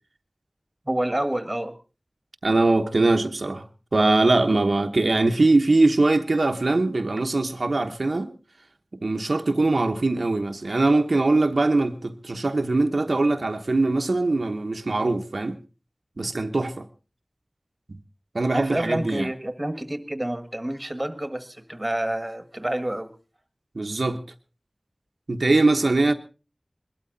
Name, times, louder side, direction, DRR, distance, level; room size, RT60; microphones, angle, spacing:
voice 1, 0.9-1.7 18.5-23.1, right 1 dB, 25° right, 1.6 m, -28 dB
voice 2, 2.4-3.6 3.9-8.3 9.0-15.6 16.2-16.9 17.9-18.0 18.3-19.3 23.7-24.2 25.3-26.1, right 2 dB, 80° right, 1.0 m, -22 dB
21.5 x 12.5 x 3.9 m
wide cardioid pair, 55°, 0 cm